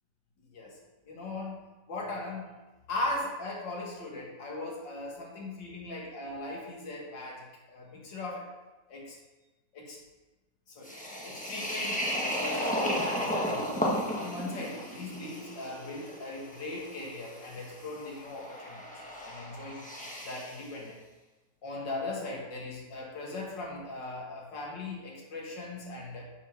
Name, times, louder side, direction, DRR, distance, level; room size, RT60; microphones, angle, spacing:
voice 1, 1.1-1.6 1.9-2.6 2.9-8.6 8.9-9.2 9.7-10.0 10.8-13.8 14.1-18.9 19.2-19.9 20.2-21.0 21.6-26.2, left 2 dB, 80° left, -2 dB, 2.6 m, -39 dB
sound 1, 10.8-20.6, equal, 5° left, 1.2 m, -34 dB
7.3 x 6.7 x 6.0 m, 1.1 s
omnidirectional pair, 1.9 m